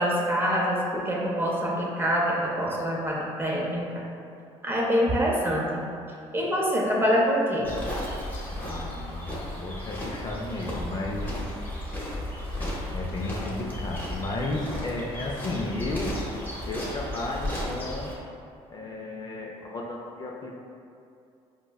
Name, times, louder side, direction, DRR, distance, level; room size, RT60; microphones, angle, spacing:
voice 1, 0.0-4.0 4.6-5.8 6.3-7.7, equal, 15° right, -3 dB, 0.6 m, -25 dB
sound 1, 7.6-18.1, left 1 dB, 15° left, 0.8 m, -34 dB
voice 2, 8.6-11.4 12.6-16.2 16.7-18.1 18.7-20.6, left 2 dB, 35° left, -2 dB, 0.4 m, -33 dB
4.4 x 2.1 x 2.2 m, 2.5 s
supercardioid pair, 85°, 12 cm